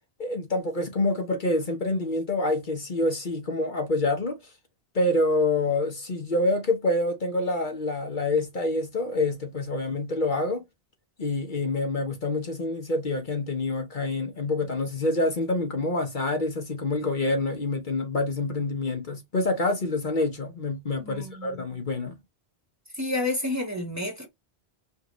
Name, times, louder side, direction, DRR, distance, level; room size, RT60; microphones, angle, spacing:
voice 1, 0.2-4.4 4.9-10.6 11.2-22.2, left 2 dB, 50° left, 1.1 m, -27 dB
voice 2, 21.0-21.6 22.9-24.3, left 2 dB, 15° right, 1.2 m, -30 dB
5.1 x 2.5 x 3.0 m
omnidirectional pair, 1.1 m